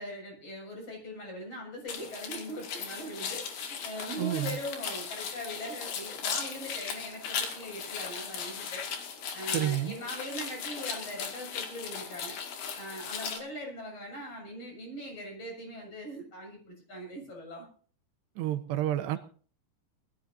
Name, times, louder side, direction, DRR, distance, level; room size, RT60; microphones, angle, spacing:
voice 1, 0.0-8.9 9.3-12.4 12.7-17.7, equal, 35° left, 0 dB, 7.9 m, -41 dB
sound 1, 1.9-13.4, left 6 dB, 65° left, 3.9 m, -37 dB
voice 2, 4.2-4.6 9.5-9.9 18.4-19.2, right 13 dB, 85° right, 10 dB, 2.9 m, -30 dB
22.0 x 14.0 x 2.8 m, 0.43 s
omnidirectional pair, 4.8 m